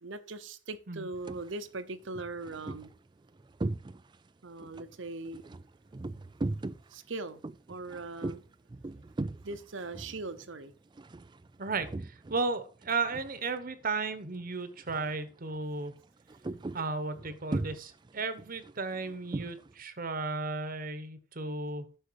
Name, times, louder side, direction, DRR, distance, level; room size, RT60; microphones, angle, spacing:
voice 1, 0.0-2.9 4.4-5.4 6.9-7.4 7.7-8.4 9.4-10.7, right 3 dB, 70° right, 0.9 m, -40 dB
sound 1, 1.1-1.5 2.0-4.3 4.6-12.5 12.7-13.9 14.1-14.4 14.8-15.2 15.5-19.7, right 2 dB, 25° right, 0.4 m, -39 dB
voice 2, 11.6-15.9 16.7-21.8, right 3 dB, 45° right, 1.0 m, -34 dB
10.0 x 6.5 x 4.7 m
head